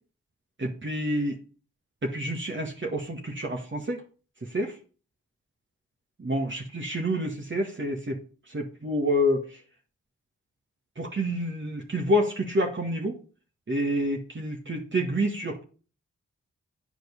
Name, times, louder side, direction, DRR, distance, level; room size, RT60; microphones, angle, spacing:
voice 1, 0.6-1.4 2.0-4.0 4.4-4.8 6.2-9.6 11.0-13.2 13.7-15.6, equal, 40° right, 1 dB, 1.8 m, -28 dB
9.1 x 5.3 x 6.9 m, 0.38 s
cardioid pair, 50°, 29 cm